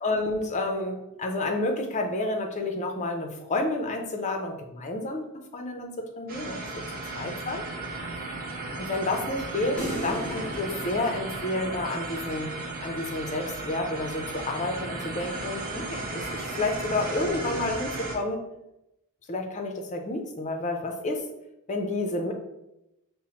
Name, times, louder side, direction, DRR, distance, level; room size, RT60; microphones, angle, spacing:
voice 1, 0.0-6.7 7.2-7.6 8.8-12.5 12.8-18.4 19.3-21.2 21.7-22.3, left 2 dB, 35° left, 4 dB, 0.5 m, -30 dB
sound 1, 6.3-18.1, right 2 dB, 40° right, 0.7 m, -35 dB
sound 2, 9.8-12.2, equal, 5° left, 0.8 m, -36 dB
5.3 x 2.0 x 2.9 m, 0.89 s
head